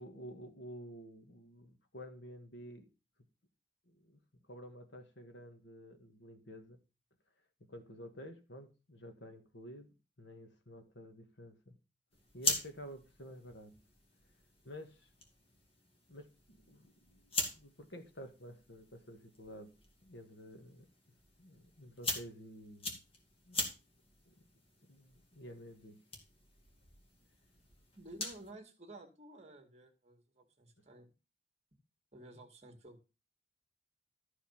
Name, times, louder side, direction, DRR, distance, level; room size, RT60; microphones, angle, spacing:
voice 1, 0.0-2.9 3.9-4.2 4.5-6.8 7.7-9.9 10.2-11.8 12.3-13.7 14.6-15.1 16.1-19.7 20.0-20.9 21.4-23.0 23.5-23.7 24.3-24.5 24.9-26.0, equal, 70° left, 1.9 m, -51 dB
sound 1, 12.1-28.5, left 2 dB, 35° left, 2.4 m, -43 dB
voice 2, 27.9-31.1 32.1-33.0, right 1 dB, 35° right, 2.1 m, -53 dB
13.0 x 5.1 x 5.7 m
head